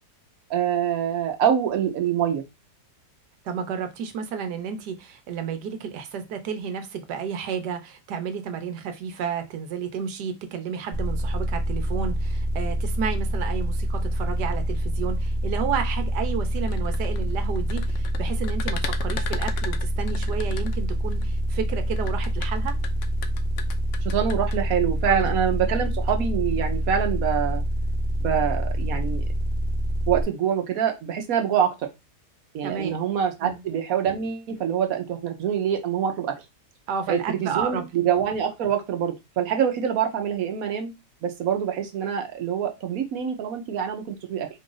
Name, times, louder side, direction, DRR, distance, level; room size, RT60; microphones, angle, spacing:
voice 1, 0.5-2.4 24.0-27.6 28.2-29.2 30.1-31.7 32.5-36.3 37.1-40.9 41.2-44.5, right 8 dB, 65° right, 4 dB, 1.2 m, -25 dB
voice 2, 3.4-22.7 25.0-25.3 32.6-33.0 33.4-33.6 36.9-37.9, right 7 dB, 85° right, 7 dB, 1.4 m, -31 dB
sound 1, 10.9-30.2, equal, 40° right, 1.1 m, -26 dB
sound 2, 16.6-21.2 22.0-24.6, left 7 dB, 70° left, 0.7 m, -36 dB
4.7 x 2.5 x 3.8 m, 0.23 s
omnidirectional pair, 1.7 m